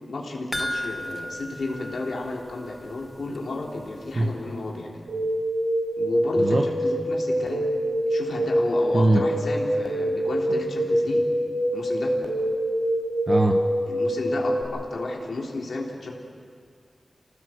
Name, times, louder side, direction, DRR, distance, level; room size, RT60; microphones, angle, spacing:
voice 1, 0.1-5.0 6.0-7.7 8.1-11.2 11.7-12.1 13.9-16.2, left 2 dB, 85° left, -1 dB, 3.5 m, -33 dB
sound 1, 0.5-3.1 3.4-3.5 3.9-4.0, left 1 dB, 15° left, 0.8 m, -34 dB
sound 2, 5.1-14.6, equal, 65° right, 5.0 m, -25 dB
voice 2, 13.3-13.6, right 2 dB, 45° right, 3 dB, 1.2 m, -21 dB
27.0 x 18.5 x 7.9 m, 2.1 s
wide cardioid pair, 75°, 0 cm